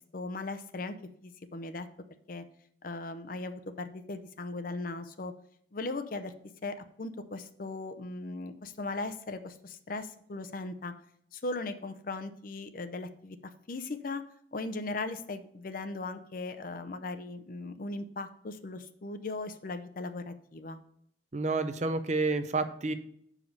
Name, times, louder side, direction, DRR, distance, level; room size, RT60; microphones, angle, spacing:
voice 1, 0.1-0.9 1.2-1.9 2.3-2.4 2.8-5.3 5.7-6.3 6.6-10.9 11.3-13.4 13.7-14.2 14.5-20.8, left 3 dB, 50° left, 10 dB, 0.6 m, -38 dB
voice 2, 21.3-22.9, right 3 dB, 40° right, 9 dB, 0.6 m, -29 dB
6.5 x 4.9 x 5.3 m, 0.68 s
head